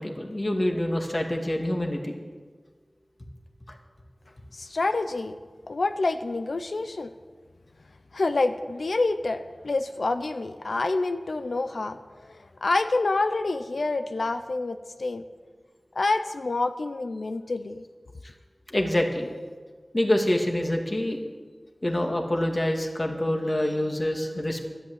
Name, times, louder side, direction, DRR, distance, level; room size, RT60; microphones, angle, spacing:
voice 1, 0.0-2.1 18.7-19.3 19.9-21.2 21.8-24.6, left 1 dB, 40° left, 2 dB, 2.3 m, -26 dB
voice 2, 4.5-5.3 5.7-7.1 8.1-12.0 12.3-15.2 15.9-17.8, left 3 dB, 90° left, 9 dB, 0.6 m, -27 dB
12.5 x 11.0 x 8.1 m, 1.5 s
wide cardioid pair, 50°, 0 cm